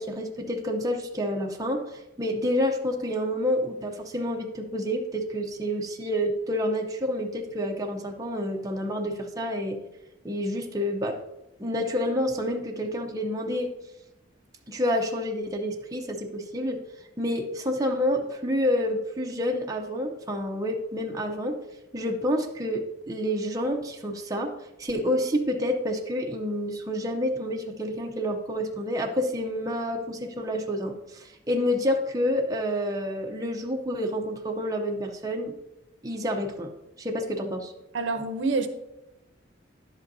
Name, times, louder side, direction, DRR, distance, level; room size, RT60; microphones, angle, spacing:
voice 1, 0.0-9.8 10.2-11.2 11.6-13.7 14.7-16.8 17.2-21.6 21.9-24.5 24.8-35.5 36.0-36.7 37.0-37.7, equal, 20° right, 1 dB, 0.7 m, -28 dB
voice 2, 37.9-38.7, right 3 dB, 65° right, 8 dB, 0.8 m, -26 dB
10.5 x 8.0 x 2.7 m, 0.93 s
head